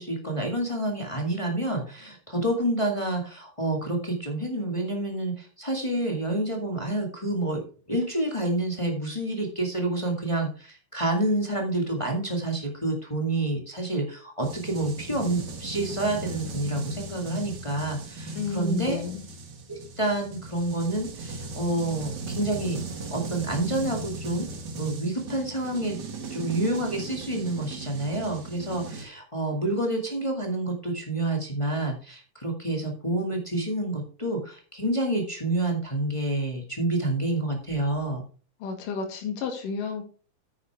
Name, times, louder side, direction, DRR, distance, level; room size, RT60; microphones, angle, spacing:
voice 1, 0.0-19.0 19.7-24.5 24.8-26.0 26.3-38.2, right 1 dB, 15° left, 1 dB, 1.1 m, -28 dB
sound 1, 14.4-29.1, right 3 dB, 50° right, 1.3 m, -37 dB
voice 2, 18.3-19.2 38.6-40.0, left 4 dB, 75° left, 3 dB, 3.4 m, -31 dB
9.5 x 8.7 x 3.4 m, 0.38 s
omnidirectional pair, 3.8 m